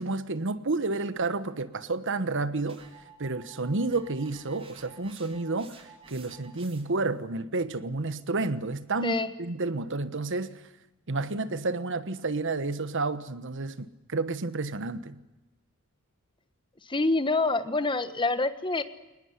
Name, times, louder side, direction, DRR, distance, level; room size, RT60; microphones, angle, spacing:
voice 1, 0.0-2.9 3.2-10.6 11.1-15.2, right 3 dB, 60° right, 1.3 m, -30 dB
sound 1, 2.7-7.1, right 4 dB, 25° right, 3.2 m, -52 dB
voice 2, 16.8-18.8, left 3 dB, 25° left, 1.3 m, -26 dB
21.5 x 20.0 x 9.6 m
head